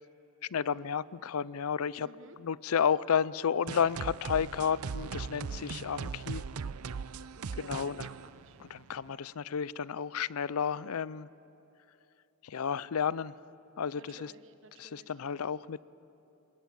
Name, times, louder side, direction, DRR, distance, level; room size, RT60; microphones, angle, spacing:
voice 1, 0.5-2.1 2.4-6.4 7.6-8.1 8.7-11.3 12.4-13.4 13.8-14.3 14.8-15.8, left 7 dB, 80° left, 20 dB, 0.5 m, -32 dB
voice 2, 2.0-2.4 7.4-8.6 13.9-15.2, right 3 dB, 60° right, 10 dB, 1.2 m, -54 dB
sound 1, 3.7-9.1, right 5 dB, 85° right, 0.6 m, -39 dB
26.0 x 21.0 x 8.7 m, 2.9 s
head